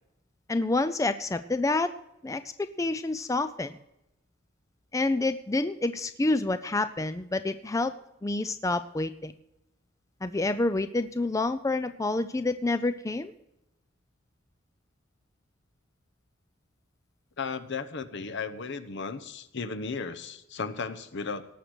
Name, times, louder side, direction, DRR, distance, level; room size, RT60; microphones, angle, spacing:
voice 1, 0.5-1.9 2.2-3.7 4.9-7.9 8.2-9.3 10.2-13.3, left 2 dB, 15° left, 11 dB, 0.4 m, -28 dB
voice 2, 17.4-21.5, left 4 dB, 60° left, 10 dB, 0.9 m, -35 dB
18.0 x 6.6 x 6.0 m, 0.85 s
head